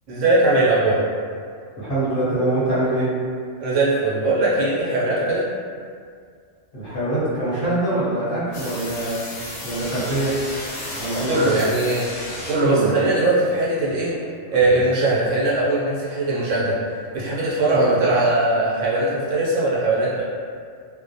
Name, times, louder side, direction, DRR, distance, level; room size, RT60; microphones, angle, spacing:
voice 1, 0.1-1.0 3.6-5.5 11.3-12.1 12.5-14.2 14.5-16.7 17.1-20.2, right 2 dB, 75° right, -7 dB, 1.0 m, -20 dB
voice 2, 1.8-3.1 6.7-9.1 9.6-10.3 11.0-11.6 12.6-12.9 14.7-14.8 17.7-18.0, right 1 dB, 50° left, -10 dB, 0.8 m, -23 dB
sound 1, 8.5-12.8, left 1 dB, 80° left, 1.1 m, -33 dB
2.4 x 2.1 x 2.6 m, 2.1 s
omnidirectional pair, 1.3 m